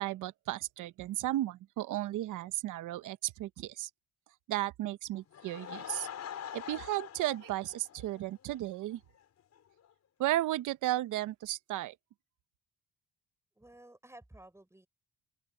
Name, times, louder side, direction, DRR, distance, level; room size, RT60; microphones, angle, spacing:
voice 1, 0.0-3.9 4.5-6.1 6.5-9.0 10.2-11.9, right 15 dB, 85° right, 0.9 m, -34 dB
Laughter / Crowd, 5.1-8.6 8.9-9.0 9.6-9.7 9.8-9.9, left 9 dB, 60° left, 5.2 m, -44 dB
voice 2, 13.6-14.9, right 1 dB, 10° right, 7.0 m, -54 dB
open air
cardioid pair, 90°, 30 cm